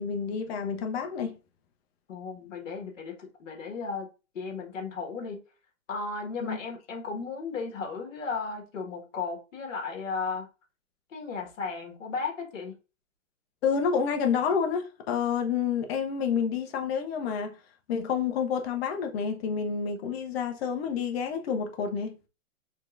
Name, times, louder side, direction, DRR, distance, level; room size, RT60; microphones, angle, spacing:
voice 1, 0.0-1.3 6.4-6.6 13.6-17.6 17.9-22.2, left 6 dB, 50° left, 0.9 m, -29 dB
voice 2, 2.1-4.1 4.3-5.4 5.9-10.5 11.1-12.7, left 4 dB, 70° left, 1.7 m, -35 dB
4.5 x 3.4 x 2.6 m
hypercardioid pair, 130°, 40 cm